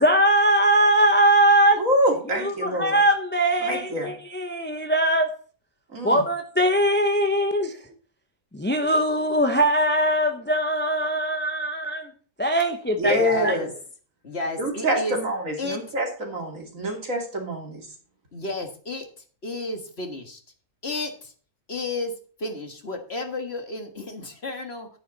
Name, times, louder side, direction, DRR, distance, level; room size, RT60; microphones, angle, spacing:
voice 1, 0.0-1.8 2.3-5.3 6.0-7.7 8.5-12.1 12.4-13.2 13.4-13.6, right 1 dB, 10° left, 5 dB, 0.7 m, -21 dB
voice 2, 1.8-3.0 3.6-4.1 5.9-6.2 13.0-13.7 14.6-17.9, equal, 60° right, 1 dB, 3.3 m, -26 dB
voice 3, 13.1-13.7 14.2-15.2 15.6-15.8 18.3-19.1 19.4-20.4 20.8-21.3 21.7-22.1 22.4-24.9, left 2 dB, 45° left, 5 dB, 1.9 m, -32 dB
11.0 x 9.8 x 4.1 m, 0.42 s
omnidirectional pair, 1.6 m